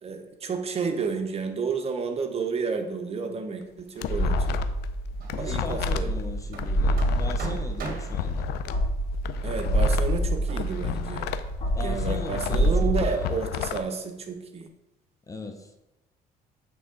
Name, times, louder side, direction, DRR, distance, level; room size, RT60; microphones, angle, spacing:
voice 1, 0.0-4.6 5.4-6.1 7.4-7.6 9.4-11.3 11.8-14.7, right 5 dB, 35° right, 5 dB, 0.8 m, -31 dB
sound 1, 3.6-4.9 5.1-8.7 9.1-11.5 11.8-13.8, left 11 dB, 80° left, 0.4 m, -32 dB
sound 2, 4.1-13.1, right 1 dB, 45° left, 2.0 m, -27 dB
Hammer, 5.1-12.0, right 4 dB, 55° right, 1.0 m, -43 dB
voice 2, 5.2-8.5 11.7-13.3 15.3-15.8, left 2 dB, 20° left, 5 dB, 0.6 m, -38 dB
8.3 x 3.4 x 3.8 m, 0.93 s
cardioid pair, 110°, 17 cm